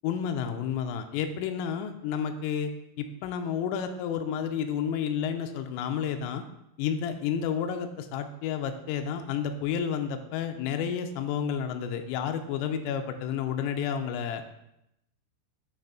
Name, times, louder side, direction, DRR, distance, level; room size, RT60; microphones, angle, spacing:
voice 1, 0.0-2.7 3.0-6.4 6.8-14.4, left 8 dB, 85° left, 6 dB, 3.2 m, -31 dB
9.0 x 3.4 x 5.7 m, 0.83 s
omnidirectional pair, 5.9 m